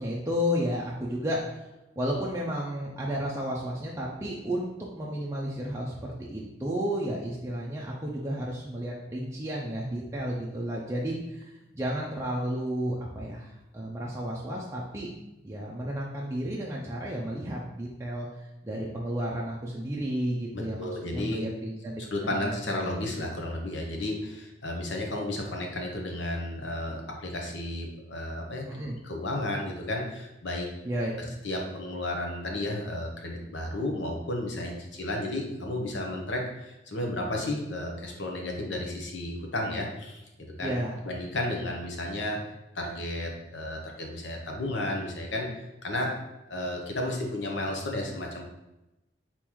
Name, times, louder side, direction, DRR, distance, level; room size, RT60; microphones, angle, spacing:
voice 1, 0.0-1.7 2.0-15.1 15.4-22.5 28.7-29.0 30.8-31.3 40.6-41.0, equal, 15° right, -4 dB, 0.5 m, -32 dB
voice 2, 20.5-21.4 22.0-28.6 29.0-30.7 31.4-40.7 41.0-46.2 46.5-48.4, left 1 dB, 70° left, 1 dB, 0.9 m, -33 dB
4.2 x 3.8 x 3.0 m, 0.95 s
head